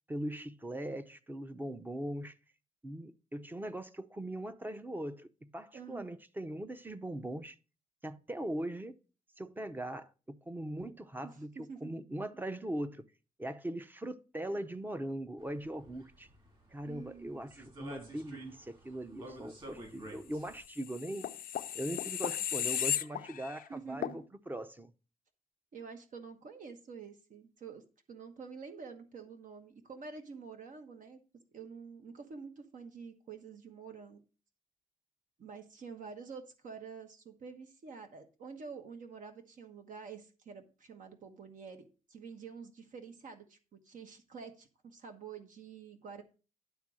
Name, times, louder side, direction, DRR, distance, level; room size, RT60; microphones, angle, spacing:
voice 1, 0.1-2.4 2.8-7.6 8.0-8.9 9.4-13.0 13.4-16.3 16.7-21.3 21.7-24.9, right 1 dB, 15° right, 0.6 m, -40 dB
voice 2, 5.7-6.1 11.2-11.9 16.8-17.4 23.7-24.3 25.7-31.2 31.5-34.2 35.4-46.2, right 5 dB, 65° right, 1.2 m, -48 dB
sound 1, 15.4-20.6, right 1 dB, 35° right, 3.8 m, -51 dB
sound 2, 20.7-23.6 24.0-24.2, left 10 dB, 80° left, 0.4 m, -35 dB
11.0 x 3.7 x 6.2 m
wide cardioid pair, 135°, 14 cm